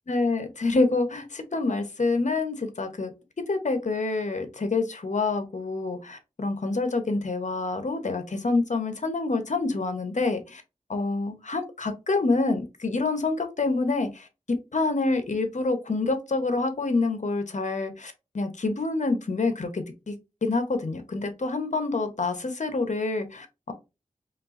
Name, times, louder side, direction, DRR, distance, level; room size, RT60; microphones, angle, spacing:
voice 1, 0.1-3.1 3.5-10.6 10.9-20.1 20.4-23.7, left 3 dB, 60° left, 8 dB, 1.0 m, -27 dB
4.5 x 3.3 x 2.6 m, 0.26 s
wide cardioid pair, 70°, 14 cm